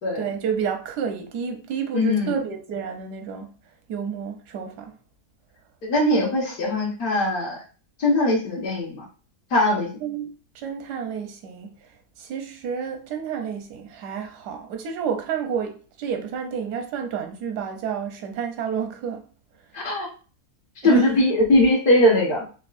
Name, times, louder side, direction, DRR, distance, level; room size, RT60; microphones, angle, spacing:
voice 1, 0.2-3.5 3.9-4.9 10.0-10.3 10.5-11.9 12.2-19.3 20.8-21.1, right 7 dB, 85° right, 1.3 m, -30 dB
voice 2, 1.9-2.3 5.8-7.6 8.0-9.0 9.5-9.9 19.7-20.1 20.8-22.4, left 1 dB, 70° left, 1.7 m, -20 dB
4.4 x 2.4 x 2.5 m
omnidirectional pair, 1.7 m